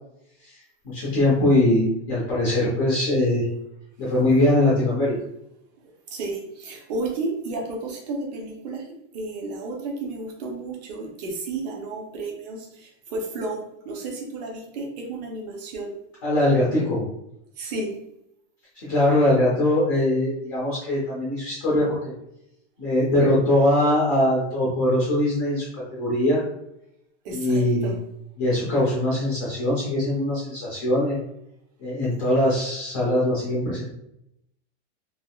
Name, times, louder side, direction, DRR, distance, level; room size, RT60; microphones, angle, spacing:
voice 1, 0.8-3.5 4.0-5.1 16.2-17.0 18.8-22.1 22.8-26.4 27.3-27.9 28.4-31.2 31.8-33.8, left 1 dB, 20° left, -6 dB, 0.3 m, -21 dB
voice 2, 5.8-8.9 9.1-16.0 17.6-17.9 27.2-27.9, right 2 dB, 35° right, 0 dB, 0.6 m, -32 dB
3.4 x 2.4 x 2.2 m, 0.80 s
supercardioid pair, 180°, 35 cm